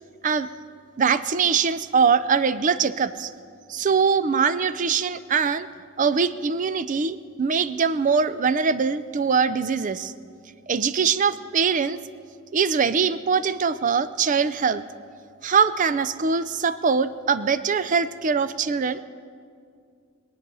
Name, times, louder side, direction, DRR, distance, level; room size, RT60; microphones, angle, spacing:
voice 1, 1.0-3.3 3.7-5.7 6.0-10.1 10.7-12.0 12.5-14.8 15.4-19.0, right 5 dB, 40° right, 14 dB, 0.5 m, -22 dB
23.5 x 9.1 x 5.5 m, 2.2 s
head